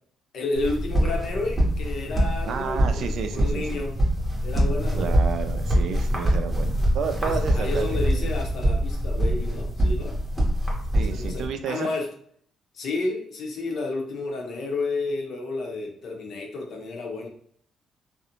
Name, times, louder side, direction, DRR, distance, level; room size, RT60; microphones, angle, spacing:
voice 1, 0.3-4.0 4.4-5.1 7.2-10.2 11.0-12.1 12.7-17.3, left 3 dB, 60° left, 1 dB, 0.7 m, -31 dB
sound 1, 0.6-11.5, equal, 10° right, 0.8 m, -24 dB
voice 2, 2.5-3.8 5.0-8.3 10.9-11.9, right 6 dB, 65° right, 7 dB, 0.3 m, -31 dB
2.5 x 2.0 x 2.8 m, 0.62 s
cardioid pair, 115°, 0 cm